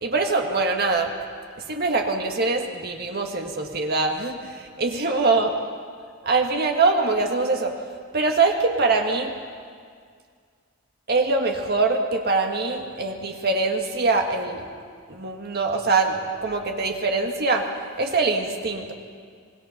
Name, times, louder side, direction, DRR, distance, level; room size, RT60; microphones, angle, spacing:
voice 1, 0.0-1.1 1.7-5.5 6.2-7.7 8.1-9.3 11.1-14.7 15.1-17.7 18.0-18.9, right 3 dB, 45° right, 3 dB, 1.7 m, -23 dB
25.5 x 20.5 x 5.9 m, 2.1 s
head